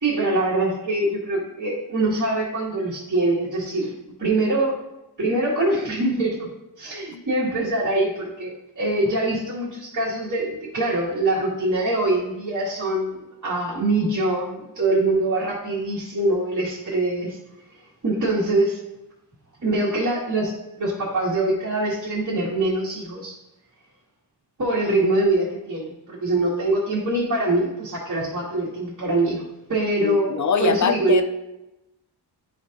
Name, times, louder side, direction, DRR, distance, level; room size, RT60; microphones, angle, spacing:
voice 1, 0.0-4.8 5.2-6.5 6.8-17.4 18.0-18.8 19.6-23.4 24.6-31.2, right 2 dB, 45° right, -8 dB, 1.9 m, -24 dB
voice 2, 30.0-31.2, left 5 dB, 45° left, 10 dB, 0.6 m, -23 dB
11.5 x 4.3 x 2.6 m, 0.93 s
wide cardioid pair, 135°, 41 cm